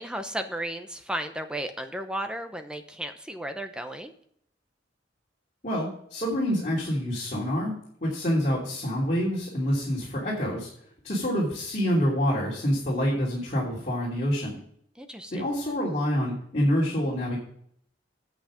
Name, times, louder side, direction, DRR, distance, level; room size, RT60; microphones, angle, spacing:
voice 1, 0.0-4.1 15.0-15.4, right 1 dB, 5° right, 7 dB, 0.7 m, -34 dB
voice 2, 5.6-7.7 8.0-10.7 11.0-14.6 15.3-17.4, equal, 40° left, -6 dB, 2.9 m, -27 dB
8.8 x 8.1 x 5.0 m, 0.66 s
head